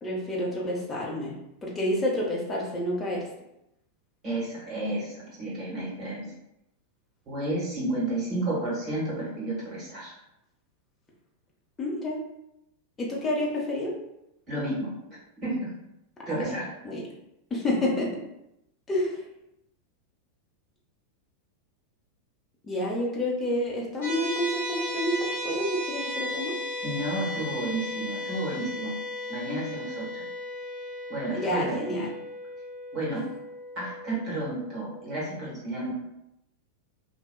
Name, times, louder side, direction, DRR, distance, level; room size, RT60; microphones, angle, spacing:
voice 1, 0.0-1.4 1.6-3.2 11.8-12.2 13.0-13.9 16.8-17.0 17.5-18.1 18.9-19.2 22.6-25.2 25.4-26.5 31.3-32.1, left 1 dB, 20° left, -3 dB, 0.7 m, -29 dB
voice 2, 4.2-6.3 7.3-10.1 14.5-14.9 15.4-15.7 16.3-16.7 26.8-28.9 29.3-30.2 31.1-32.1 32.9-33.2 33.8-35.9, right 1 dB, 30° right, -6 dB, 1.2 m, -31 dB
sound 1, 24.0-35.2, left 1 dB, 50° left, 0.7 m, -36 dB
2.7 x 2.2 x 2.2 m, 0.84 s
figure-of-eight pair, 90°, 0 cm